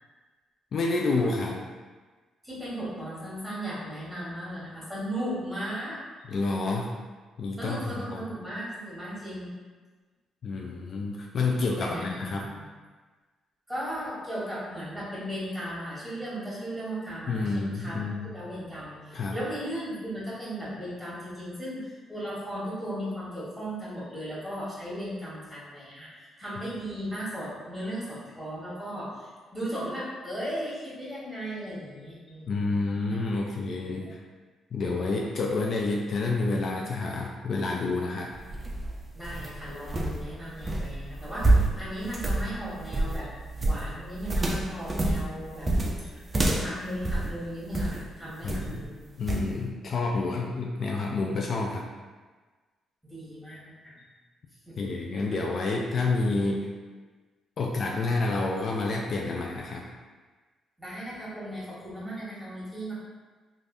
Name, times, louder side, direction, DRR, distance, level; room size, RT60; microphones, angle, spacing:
voice 1, 0.7-1.6 6.3-6.9 7.4-8.2 10.4-12.5 17.3-18.3 19.1-19.4 32.5-34.2 34.7-38.3 48.4-48.8 49.2-51.9 54.8-56.7 57.6-59.8, left 3 dB, 55° left, -1 dB, 0.3 m, -29 dB
voice 2, 2.4-6.0 7.6-9.5 11.8-12.7 13.7-32.7 33.1-33.2 34.0-34.1 39.1-43.3 43.6-45.7 46.0-49.0 53.0-54.1 54.7-54.8 60.8-63.0, equal, ahead, -9 dB, 1.4 m, -36 dB
sound 1, 38.3-48.0 48.5-48.8 49.3-49.5, right 2 dB, 25° right, 0.4 m, -28 dB
3.3 x 2.5 x 2.6 m, 1.4 s
cardioid pair, 90°, 0 cm